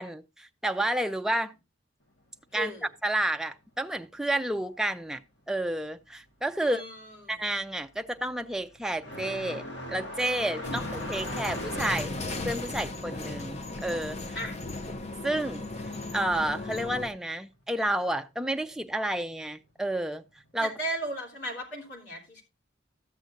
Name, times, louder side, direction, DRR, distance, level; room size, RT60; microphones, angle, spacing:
voice 1, 0.0-1.5 2.5-2.7 3.0-5.2 5.5-6.8 7.3-9.6 9.9-12.1 12.4-14.4 15.2-15.7 16.1-20.2 20.5-20.7, right 1 dB, 5° right, 0.4 m, -30 dB
voice 2, 2.5-2.9 6.6-7.2 10.6-10.9 14.3-14.5 20.6-22.4, equal, 70° left, 3.3 m, -36 dB
sound 1, 6.4-6.8 7.1-15.4 15.7-16.7 17.7-17.8 18.6-18.7 20.5-20.6, left 1 dB, 90° left, 1.7 m, -40 dB
sound 2, 10.6-17.1, left 2 dB, 35° left, 0.8 m, -36 dB
13.5 x 7.7 x 2.6 m
head